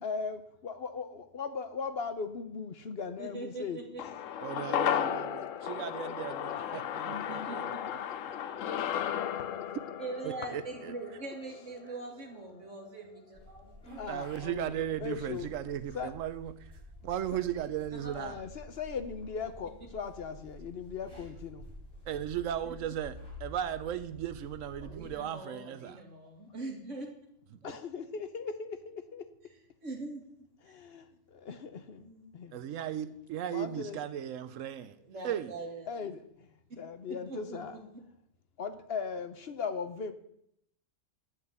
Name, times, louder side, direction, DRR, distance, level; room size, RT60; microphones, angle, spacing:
voice 1, 0.0-4.4 4.7-5.7 6.0-6.1 6.5-6.6 8.3-8.9 9.3-9.7 10.4-10.5 13.9-15.5 15.9-16.1 17.3-17.4 18.1-21.7 23.7-23.8 27.6-29.3 30.6-32.6 33.5-34.0 35.9-37.8 38.6-40.1, left 5 dB, 55° left, 0.9 m, -39 dB
voice 2, 3.2-4.0 5.7-5.8 7.0-8.0 10.0-13.6 18.0-18.4 22.6-22.7 24.8-27.1 29.8-30.4 32.0-32.3 35.0-36.0 37.1-37.6, right 2 dB, 75° right, 2.6 m, -42 dB
sound 1, 4.0-12.5 12.8-12.9, left 10 dB, 90° left, 1.1 m, -35 dB
voice 3, 4.4-7.7 10.2-10.9 14.1-16.5 17.0-18.3 22.1-23.2 23.4-26.0 32.5-35.0 35.2-35.5, right 10 dB, 90° right, 1.0 m, -36 dB
sound 2, 13.3-25.1, left 1 dB, 5° left, 5.1 m, -50 dB
10.5 x 5.8 x 8.1 m
omnidirectional pair, 1.3 m